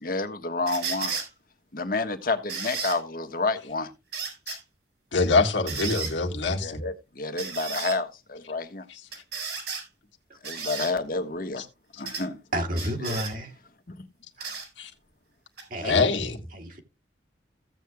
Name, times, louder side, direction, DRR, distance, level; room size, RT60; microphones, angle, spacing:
voice 1, 0.0-1.1 1.7-3.9 6.6-8.8 10.4-11.6 12.0-12.4 13.0-13.2, left 3 dB, 50° left, 1.3 m, -29 dB
sound 1, 0.7-1.3 2.5-3.0 4.1-4.6 5.7-6.1 7.4-8.0 9.1-9.8 10.4-10.9 12.1-12.3 12.7-13.3 14.4-14.7 15.6-15.7, right 5 dB, 70° right, 4.5 m, -33 dB
voice 2, 5.1-6.8 8.9-9.0 11.6-11.7 14.8-14.9 15.8-16.4, left 3 dB, 90° left, 1.8 m, -24 dB
voice 3, 12.5-13.5 14.4-14.5 15.7-16.1 16.5-16.8, equal, 50° right, 2.0 m, -31 dB
16.0 x 8.1 x 2.3 m
head